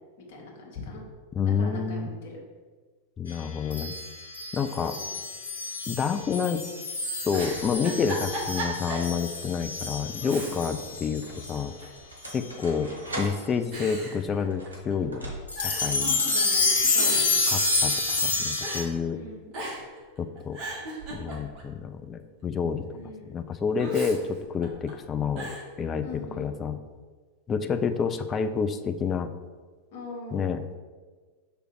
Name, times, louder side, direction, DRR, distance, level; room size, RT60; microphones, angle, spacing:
voice 1, 0.3-1.0 1.6-2.4 4.8-5.0 16.0-17.4 19.1-19.5 22.9-23.4 26.0-26.5 29.9-30.6, left 2 dB, 50° left, -2 dB, 1.6 m, -40 dB
voice 2, 1.3-2.1 3.2-3.9 4.5-5.0 5.9-6.6 7.2-11.7 12.3-15.4 15.6-16.2 17.5-18.0 18.2-19.2 20.2-20.6 21.1-22.9 23.3-25.5 25.8-26.8 27.5-29.3 30.3-30.6, left 6 dB, 25° left, 9 dB, 0.4 m, -29 dB
sound 1, 3.7-11.6 12.2-12.4 13.2-13.3 15.5-18.8, left 3 dB, 75° left, 1.7 m, -28 dB
Giggle, 7.3-9.1 9.5-9.6 10.2-10.9 11.2-12.0 12.8-13.2 13.7-14.9 15.2-15.3 15.6-15.9 16.7-18.3 18.6-18.9 19.5-20.0 20.4-21.7 23.8-24.9 25.4-25.7, right 1 dB, 35° right, 1.7 m, -37 dB
sound 2, 9.4-9.5 10.4-15.9, right 1 dB, 75° right, 1.3 m, -41 dB
6.1 x 3.3 x 4.7 m, 1.4 s
figure-of-eight pair, 90°, 0 cm